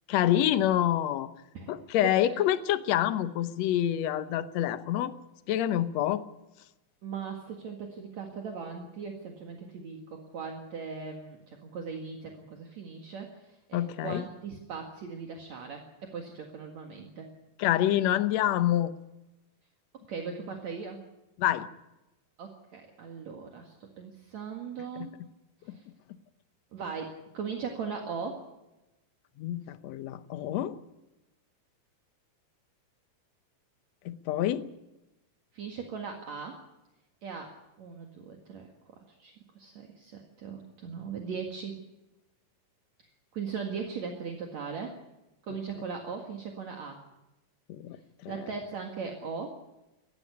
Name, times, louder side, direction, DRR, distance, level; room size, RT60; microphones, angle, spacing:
voice 1, 0.1-1.3 1.7-5.1 5.5-6.2 13.7-14.2 17.6-18.9 21.4-21.7 25.0-25.1 25.7-25.8 29.4-30.8 34.1-34.7 47.7-48.4, left 12 dB, 70° left, 12 dB, 1.8 m, -27 dB
voice 2, 1.5-2.4 7.0-17.3 19.9-21.0 22.4-25.2 25.6-25.9 26.7-28.4 35.5-36.6 37.2-37.5 37.8-38.7 39.0-41.8 43.3-45.0 45.4-47.0 48.3-49.6, right 5 dB, 55° right, 2 dB, 2.9 m, -39 dB
19.0 x 14.5 x 9.8 m, 0.98 s
omnidirectional pair, 4.0 m